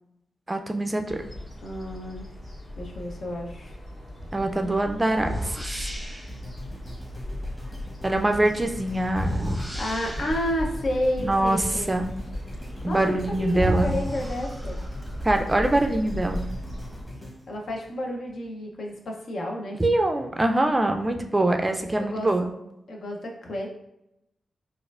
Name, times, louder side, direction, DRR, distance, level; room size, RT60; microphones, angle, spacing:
voice 1, 0.5-1.2 4.3-5.9 8.0-9.4 11.2-12.1 12.8-13.9 15.2-16.5 19.8-22.5, right 1 dB, 20° right, 5 dB, 0.3 m, -24 dB
sound 1, 1.0-17.0, left 1 dB, 35° left, 1.4 m, -37 dB
voice 2, 1.6-2.3 2.8-3.8 9.7-11.9 12.8-14.8 17.5-19.8 22.0-22.5 22.9-23.7, left 1 dB, 70° left, 0 dB, 0.6 m, -31 dB
sound 2, 4.2-4.4 5.2-6.4 9.1-10.6 12.9-13.0 13.5-15.1, equal, 5° right, 0.7 m, -31 dB
sound 3, 6.3-18.5 19.0-19.1, equal, 15° left, 1.1 m, -41 dB
4.3 x 2.4 x 2.4 m, 0.84 s
cardioid pair, 80°, 0 cm